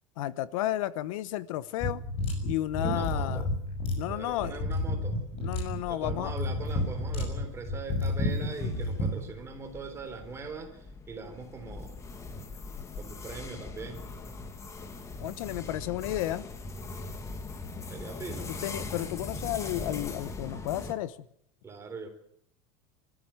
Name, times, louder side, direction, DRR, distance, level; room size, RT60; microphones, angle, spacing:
voice 1, 0.2-2.0 2.4-3.5 4.0-4.6 5.4-6.3 15.2-16.5 18.6-21.2, left 14 dB, 80° left, 16 dB, 1.1 m, -32 dB
sound 1, 1.8-9.2, left 2 dB, 35° left, 6.4 m, -31 dB
voice 2, 2.8-3.5 4.1-5.2 5.9-12.0 13.0-14.0 17.9-18.6 21.6-22.1, right 4 dB, 15° right, 4 dB, 3.8 m, -41 dB
sound 2, 3.4-20.9, left 3 dB, 15° left, 1.6 m, -42 dB
24.5 x 14.0 x 8.9 m, 0.70 s
supercardioid pair, 160°, 17 cm